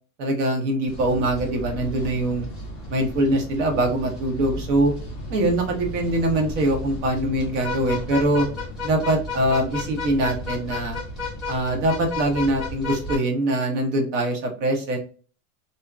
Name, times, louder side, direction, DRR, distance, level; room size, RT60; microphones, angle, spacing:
voice 1, 0.2-2.5 2.9-4.9 5.3-8.5 8.8-11.0 11.5-15.0, right 1 dB, 55° right, 3 dB, 0.9 m, -23 dB
sound 1, 0.9-13.2, left 3 dB, ahead, 0.5 m, -33 dB
2.6 x 2.4 x 2.2 m, 0.39 s
supercardioid pair, 165°, 43 cm